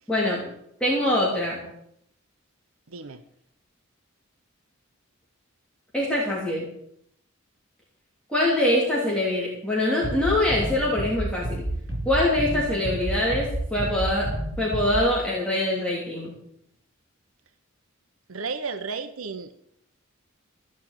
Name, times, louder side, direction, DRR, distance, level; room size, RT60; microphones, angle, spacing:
voice 1, 0.1-0.4 0.8-1.6 5.9-6.7 8.3-11.6 12.0-16.3, left 1 dB, 5° left, -6 dB, 3.1 m, -24 dB
voice 2, 2.9-3.2 18.3-19.6, right 4 dB, 85° right, 9 dB, 1.0 m, -33 dB
sound 1, 10.0-15.0, right 1 dB, 50° right, 5.9 m, -30 dB
15.0 x 6.3 x 9.0 m, 0.73 s
head